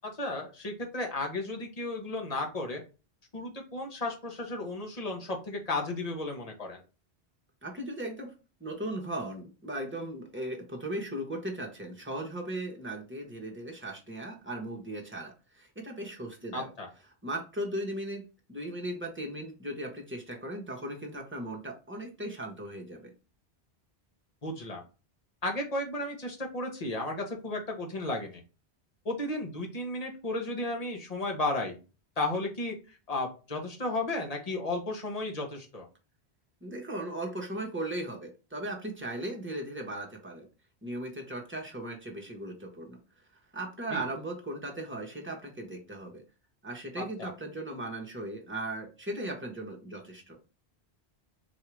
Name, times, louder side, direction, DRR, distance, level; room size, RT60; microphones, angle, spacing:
voice 1, 0.0-2.8 3.3-6.8 16.5-16.9 24.4-24.8 25.4-28.4 29.0-31.8 32.2-35.9 43.9-44.0 47.0-47.3, left 2 dB, 35° left, 1 dB, 1.1 m, -34 dB
voice 2, 7.6-8.3 8.6-16.7 17.2-18.2 18.5-23.1 36.6-40.5 40.8-43.0 43.5-46.2 46.6-50.4, right 1 dB, 10° right, 0 dB, 1.1 m, -37 dB
4.2 x 2.7 x 4.6 m, 0.32 s
omnidirectional pair, 1.1 m